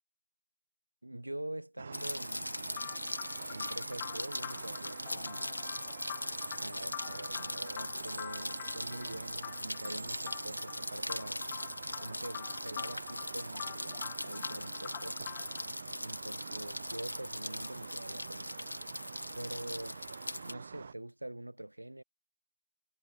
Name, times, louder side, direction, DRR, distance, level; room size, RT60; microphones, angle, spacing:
voice 1, 1.0-2.9 3.5-5.5 6.6-11.5 12.0-15.2 16.0-18.6 19.3-20.0 20.4-22.0, right 1 dB, 80° right, 1.6 m, -45 dB
sound 1, 1.8-20.9, right 5 dB, 20° right, 0.7 m, -47 dB
Rain, 1.9-20.5, left 1 dB, 75° left, 1.6 m, -40 dB
sound 2, 2.7-15.7, left 14 dB, 10° left, 0.3 m, -47 dB
figure-of-eight pair, 175°, 0 cm